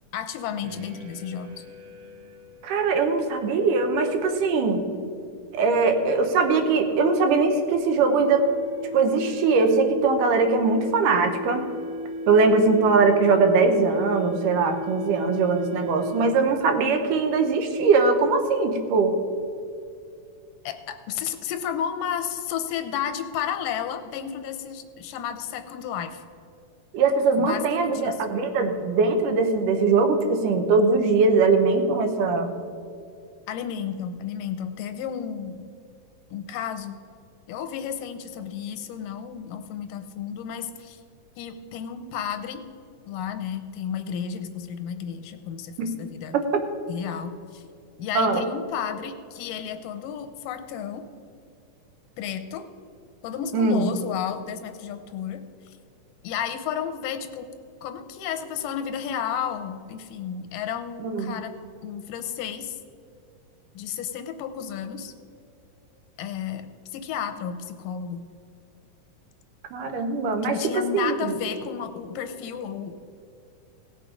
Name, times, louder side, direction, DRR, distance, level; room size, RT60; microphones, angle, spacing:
voice 1, 0.1-1.7 20.6-26.2 27.4-28.1 33.5-35.7 36.3-37.0 37.5-41.0 41.4-42.6 43.1-46.4 46.9-47.6 48.0-51.1 52.2-52.7 53.2-55.7 56.2-57.5 57.8-61.5 61.8-62.8 63.7-65.1 66.2-68.2 70.4-72.9, left 8 dB, 85° left, 8 dB, 2.4 m, -32 dB
sound 1, 0.6-16.6, left 1 dB, 60° right, 1.4 m, -37 dB
voice 2, 2.6-4.9 5.5-8.5 8.9-11.7 12.3-19.2 26.9-32.5 45.8-45.9 46.3-46.6 48.2-48.4 53.5-53.9 61.0-61.3 69.7-71.3, right 4 dB, 80° right, 6 dB, 2.6 m, -21 dB
17.0 x 6.8 x 5.1 m, 2.5 s
omnidirectional pair, 3.8 m